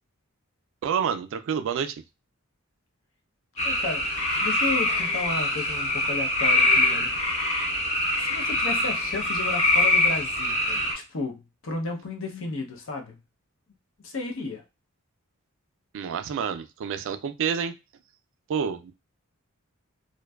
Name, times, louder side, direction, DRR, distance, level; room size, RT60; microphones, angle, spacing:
voice 1, 0.8-2.0 15.9-17.7 18.5-18.9, right 7 dB, 60° right, 0.3 m, -28 dB
voice 2, 3.6-4.1 4.4-7.2 8.2-13.2 14.0-14.6, left 3 dB, 65° left, 0.6 m, -33 dB
sound 1, 3.6-10.9, left 1 dB, 30° left, 0.7 m, -24 dB
2.6 x 2.2 x 2.2 m
head